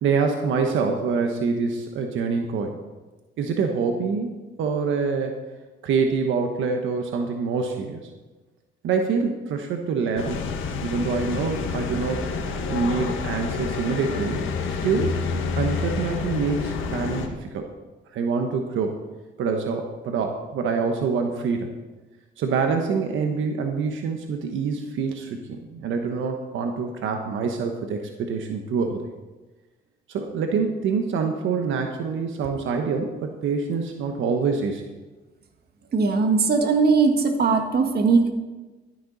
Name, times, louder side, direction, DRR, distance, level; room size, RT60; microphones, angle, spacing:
voice 1, 0.0-2.8 3.4-5.4 5.8-8.1 8.8-10.5 10.8-12.3 12.7-14.4 14.8-15.2 15.5-17.7 18.1-19.0 19.4-21.7 22.4-29.1 30.1-34.8, right 5 dB, 80° right, 4 dB, 1.2 m, -26 dB
sound 1, 10.2-17.3, left 5 dB, 80° left, 1.6 m, -28 dB
voice 2, 35.9-38.3, right 4 dB, 55° right, 5 dB, 1.7 m, -19 dB
12.5 x 10.5 x 4.1 m, 1.2 s
cardioid pair, 90°, 20 cm